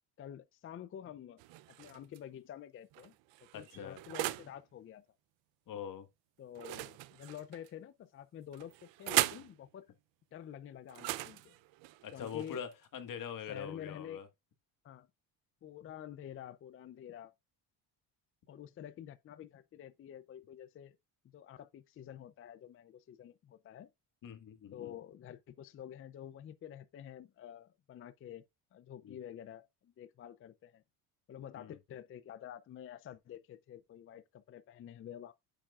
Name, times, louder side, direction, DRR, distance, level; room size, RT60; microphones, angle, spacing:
voice 1, 0.2-1.4 1.8-3.1 3.5-5.0 6.4-9.9 10.3-11.6 12.1-12.6 13.5-14.2 14.8-15.1 15.6-17.3 18.5-21.0 21.3-23.9 24.7-28.4 28.7-30.8 31.3-35.3, left 10 dB, 30° left, 0.4 m, -49 dB
sound 1, 1.4-2.2 2.9-4.6 6.5-7.7 8.5-9.5 10.9-12.8, right 17 dB, 80° right, 0.7 m, -38 dB
voice 2, 3.5-4.0 5.7-6.1 12.0-14.3 24.2-24.9 29.0-29.2 31.6-31.8, left 8 dB, 45° left, 1.6 m, -43 dB
8.9 x 7.3 x 2.4 m
cardioid pair, 145°, 44 cm